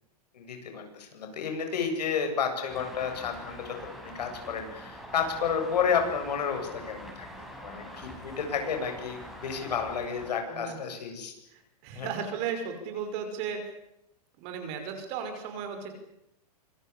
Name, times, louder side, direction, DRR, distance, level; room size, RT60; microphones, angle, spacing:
voice 1, 0.3-11.3 11.9-12.1, left 6 dB, 80° left, 5 dB, 8.0 m, -31 dB
Traffic noise roadway noise, 2.7-10.3, equal, ahead, 5.6 m, -44 dB
voice 2, 11.5-13.6 14.4-15.9, right 7 dB, 30° right, 6 dB, 5.6 m, -35 dB
26.0 x 22.0 x 8.5 m, 0.84 s
hypercardioid pair, 165°, 21 cm